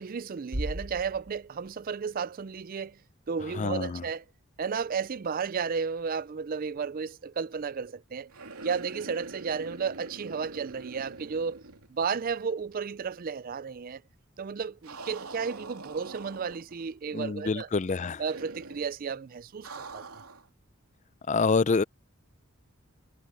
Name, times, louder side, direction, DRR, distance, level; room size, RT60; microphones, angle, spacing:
voice 1, 0.0-3.0 3.3-4.2 4.6-8.3 8.6-11.6 11.9-14.0 14.4-17.7 18.2-20.0, right 6 dB, 40° right, 0.4 m, -33 dB
Bass drum, 0.5-2.2, equal, 65° right, 4.2 m, -37 dB
voice 2, 3.5-4.0 17.1-18.2 21.3-21.8, left 4 dB, 30° left, 0.5 m, -26 dB
sound 1, 8.3-12.5 12.7-12.8 14.8-16.9 18.3-18.9 19.6-20.5, right 3 dB, 90° right, 3.0 m, -44 dB
head